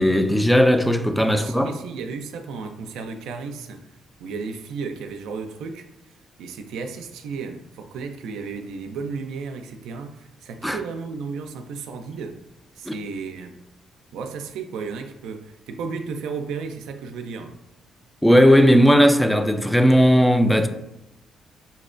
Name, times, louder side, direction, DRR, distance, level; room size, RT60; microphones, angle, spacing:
voice 1, 0.0-1.7 10.6-10.8 12.9-13.0 18.2-20.7, equal, 5° left, 0.3 m, -16 dB
voice 2, 1.3-3.9 4.2-5.9 6.4-12.4 12.8-13.6 14.1-17.6, right 5 dB, 85° right, 0.3 m, -34 dB
5.5 x 2.1 x 2.4 m
cardioid pair, 90°, 0 cm